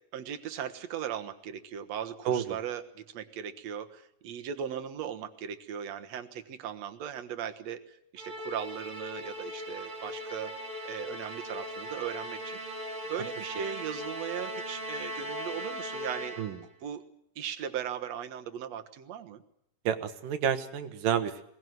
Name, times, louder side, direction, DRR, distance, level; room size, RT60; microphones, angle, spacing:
voice 1, 0.1-10.6 10.8-12.8 13.1-16.4 16.8-17.0 17.4-19.4, right 9 dB, 60° right, 8 dB, 2.4 m, -38 dB
voice 2, 2.3-2.6 16.4-16.6 19.8-21.4, right 9 dB, 90° right, 9 dB, 3.1 m, -29 dB
Musical instrument, 8.2-16.7, equal, 10° right, 3.5 m, -39 dB
22.0 x 19.5 x 9.4 m, 0.73 s
omnidirectional pair, 3.7 m